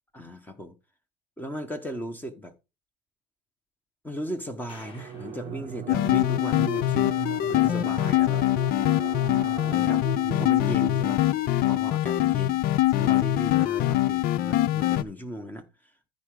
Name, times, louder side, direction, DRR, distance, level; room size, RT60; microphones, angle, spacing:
voice 1, 0.1-0.8 1.4-2.5 4.0-8.5 9.6-10.1 10.3-11.3 11.6-15.9, equal, 10° left, 1.1 m, -37 dB
sound 1, 4.7-7.0, left 4 dB, 30° left, 3.5 m, -52 dB
sound 2, 4.8-11.7, right 11 dB, 30° right, 0.4 m, -38 dB
sound 3, 5.9-15.0, left 15 dB, 50° left, 0.6 m, -23 dB
13.5 x 5.0 x 3.7 m
supercardioid pair, 125°, 20 cm